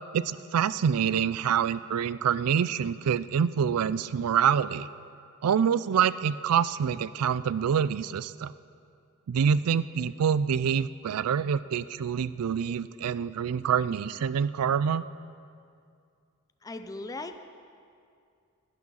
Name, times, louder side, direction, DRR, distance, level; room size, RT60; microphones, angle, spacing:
voice 1, 0.1-4.9 5.4-8.5 9.3-15.0, right 7 dB, 80° right, 17 dB, 0.4 m, -26 dB
voice 2, 16.6-17.4, left 2 dB, 15° left, 8 dB, 0.4 m, -38 dB
12.0 x 10.5 x 5.6 m, 2.3 s
head